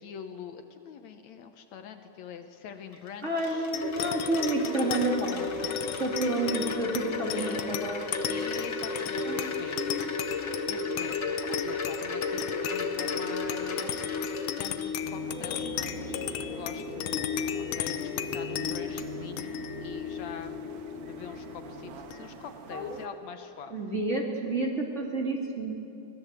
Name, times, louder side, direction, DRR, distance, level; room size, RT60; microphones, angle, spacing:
voice 1, 0.0-3.7 6.2-6.5 7.3-7.8 8.3-14.0 14.6-17.1 17.7-20.6 21.0-23.7, left 7 dB, 70° left, 7 dB, 2.2 m, -45 dB
Wind chime, 2.9-15.2, left 3 dB, 40° left, 2.0 m, -34 dB
voice 2, 3.2-5.5 6.0-8.0 9.2-9.5 22.7-22.9 23.7-25.8, right 2 dB, 25° right, -1 dB, 2.5 m, -30 dB
sound 1, 3.7-22.6, left 9 dB, 85° left, 2.4 m, -35 dB
sound 2, 15.0-23.1, right 8 dB, 85° right, 2.7 m, -44 dB
24.5 x 18.5 x 8.2 m, 2.8 s
omnidirectional pair, 3.6 m